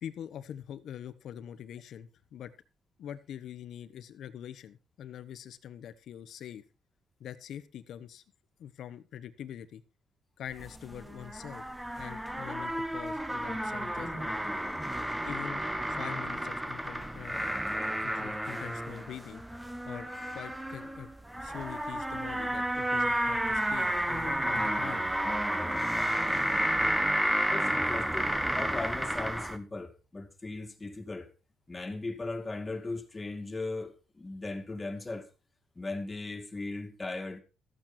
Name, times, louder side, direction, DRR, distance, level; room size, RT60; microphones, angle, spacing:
voice 1, 0.0-2.5 3.0-6.6 7.2-8.2 8.6-9.8 10.4-11.6 12.0-14.3 15.2-17.5 18.0-19.4 19.8-21.1 21.3-25.1 26.1-26.2, left 10 dB, 70° left, 1.2 m, -44 dB
sound 1, 10.5-29.6, right 1 dB, 5° right, 1.3 m, -31 dB
voice 2, 27.5-31.3 31.7-35.3 35.8-37.4, left 2 dB, 25° left, 2.3 m, -38 dB
14.0 x 9.2 x 4.4 m
cardioid pair, 90°, 0 cm